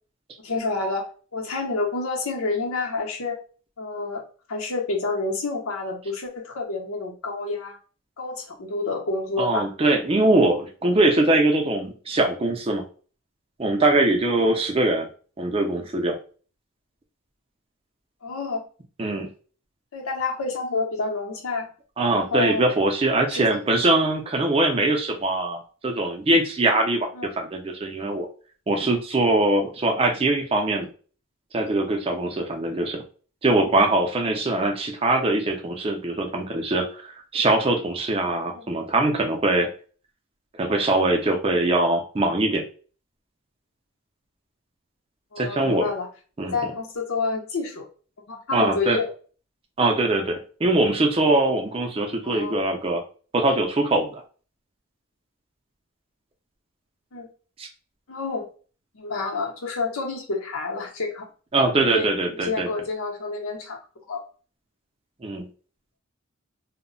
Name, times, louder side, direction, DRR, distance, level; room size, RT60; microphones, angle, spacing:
voice 1, 0.4-3.4 3.8-4.2 4.5-7.8 8.2-9.7 18.2-18.6 19.9-21.7 22.1-22.7 23.3-24.0 27.1-27.3 38.5-38.7 41.5-41.6 45.3-46.1 46.4-47.9 48.3-49.1 52.2-52.5 57.1-57.3 58.1-58.5 58.9-61.3 61.7-62.1 62.4-63.8 64.1-64.2, left 3 dB, 90° left, 1 dB, 0.7 m, -29 dB
voice 2, 9.4-12.8 13.6-15.1 15.4-16.2 19.0-19.3 22.0-27.1 27.4-28.3 28.7-30.9 31.5-33.0 33.4-37.0 37.3-39.7 40.6-42.6 45.4-45.9 46.4-46.6 48.5-49.0 49.8-53.0 53.3-54.2 57.6-57.7 61.5-62.7 65.2-65.5, right 2 dB, 25° right, 3 dB, 0.4 m, -22 dB
2.1 x 2.0 x 3.7 m, 0.39 s
head